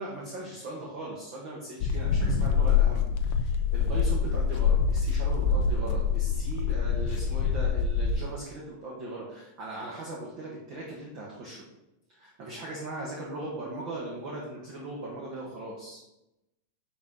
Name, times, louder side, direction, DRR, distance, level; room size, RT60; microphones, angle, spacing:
voice 1, 0.0-11.6 12.1-16.0, right 2 dB, 50° right, -3 dB, 1.8 m, -39 dB
sound 1, 1.8-8.2, left 6 dB, 90° left, 1.3 m, -25 dB
9.9 x 5.6 x 3.7 m, 0.91 s
omnidirectional pair, 3.4 m